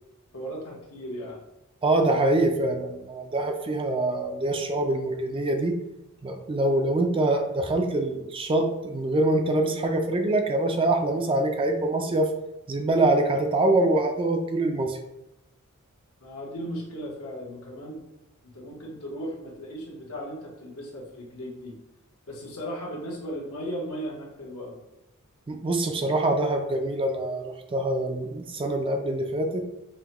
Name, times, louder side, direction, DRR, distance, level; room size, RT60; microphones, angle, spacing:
voice 1, 0.3-1.4 16.2-18.0 18.4-21.7 22.3-24.8, equal, 85° left, -3 dB, 1.1 m, -36 dB
voice 2, 1.8-5.7 6.2-12.3 12.7-15.0 25.5-29.6, right 2 dB, 25° right, 5 dB, 0.4 m, -24 dB
5.5 x 2.2 x 2.9 m, 0.91 s
head